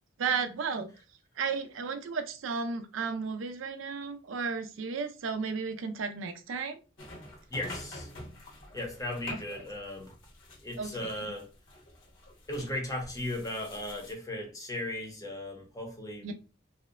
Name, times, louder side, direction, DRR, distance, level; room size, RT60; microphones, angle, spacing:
voice 1, 0.2-0.9 1.4-6.8 10.8-11.3 16.2-16.3, right 5 dB, 85° right, 0.4 m, -34 dB
sound 1, 7.0-14.1, left 1 dB, 75° left, 1.0 m, -46 dB
voice 2, 7.5-8.1 8.7-10.1 10.6-11.5 12.5-16.3, left 1 dB, 20° left, 0.7 m, -37 dB
2.7 x 2.1 x 2.3 m
head